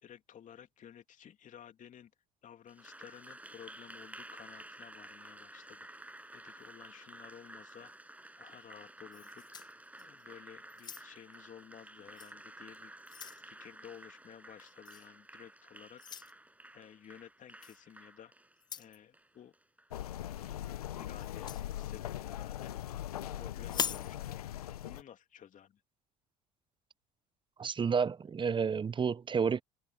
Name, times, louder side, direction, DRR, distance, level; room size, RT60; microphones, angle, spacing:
voice 1, 0.0-2.1 2.4-7.9 8.3-9.5 10.0-12.9 13.4-16.0 16.7-18.3 18.7-19.5 20.5-21.5 21.8-22.7 23.4-24.4 24.8-25.8, left 9 dB, 45° left, 3.2 m, -54 dB
Applause, 2.7-20.5, right 1 dB, 10° right, 7.9 m, -53 dB
sound 1, 9.1-10.3 10.7-11.3 12.1-12.3 12.7-13.5 14.9-15.1 16.0-16.3 17.6-17.8 18.6-19.0 21.2-21.7 23.6-24.1, left 8 dB, 25° left, 0.3 m, -40 dB
sound 2, 19.9-25.0, left 12 dB, 85° left, 1.1 m, -40 dB
voice 2, 27.6-29.6, right 6 dB, 25° right, 0.9 m, -30 dB
hypercardioid pair, 70°, 19 cm